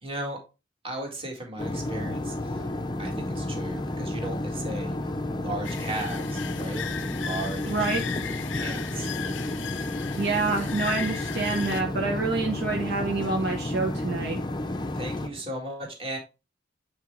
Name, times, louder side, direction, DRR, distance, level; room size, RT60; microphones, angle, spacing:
voice 1, 0.0-0.4 0.8-2.7 3.0-5.0 5.4-6.9 7.2-7.9 8.5-9.1 14.9-16.2, right 1 dB, 30° right, 1 dB, 2.0 m, -36 dB
sound 1, 1.6-15.3, left 1 dB, 25° left, 0.6 m, -31 dB
sound 2, 5.6-11.8, left 8 dB, 70° left, 0.6 m, -37 dB
voice 2, 7.7-8.0 10.2-14.4, right 3 dB, 60° right, 1 dB, 1.0 m, -27 dB
8.4 x 4.5 x 3.2 m, 0.29 s
head